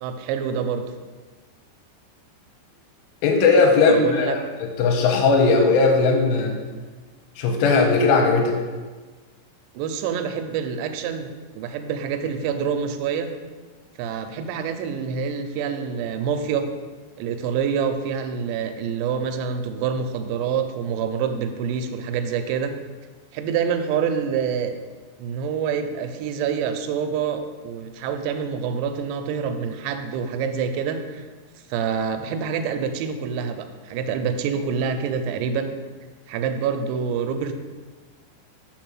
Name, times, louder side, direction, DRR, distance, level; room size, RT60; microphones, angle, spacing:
voice 1, 0.0-0.8 3.9-4.4 9.8-13.3 14.0-16.7 17.2-22.7 23.3-24.7 25.2-31.2 31.7-35.7 36.3-37.5, right 7 dB, 85° right, 8 dB, 2.9 m, -26 dB
voice 2, 3.2-4.4 4.8-6.6 7.4-8.6, left 4 dB, 85° left, 2 dB, 2.7 m, -18 dB
5.4 x 4.6 x 6.0 m, 1.4 s
omnidirectional pair, 5.1 m